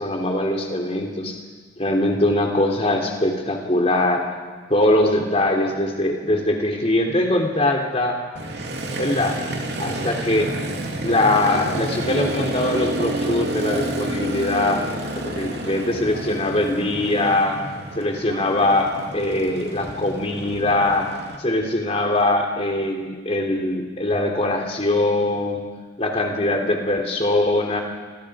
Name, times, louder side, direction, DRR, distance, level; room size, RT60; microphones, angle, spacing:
voice 1, 0.0-1.4 1.8-4.2 4.7-8.2 9.0-9.3 9.8-10.5 11.0-14.8 15.1-17.6 18.0-21.1 21.4-25.6 26.0-27.8, left 1 dB, 30° left, 1 dB, 3.5 m, -22 dB
Motorcycle, 8.4-21.4, right 1 dB, 55° right, 2.9 m, -29 dB
29.0 x 25.5 x 5.1 m, 1.4 s
head